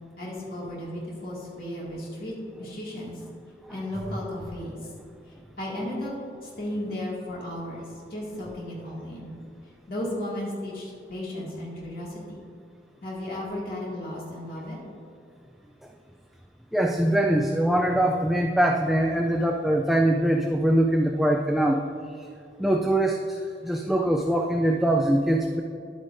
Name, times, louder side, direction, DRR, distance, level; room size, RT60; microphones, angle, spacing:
voice 1, 0.2-3.1 3.7-4.8 5.6-6.1 6.4-7.8 8.1-9.3 9.9-12.4 13.0-14.8, left 1 dB, 55° left, -5 dB, 2.2 m, -34 dB
voice 2, 16.7-21.8 22.1-22.3 22.6-25.6, right 1 dB, ahead, 1 dB, 0.3 m, -23 dB
11.0 x 8.7 x 2.6 m, 2.5 s
head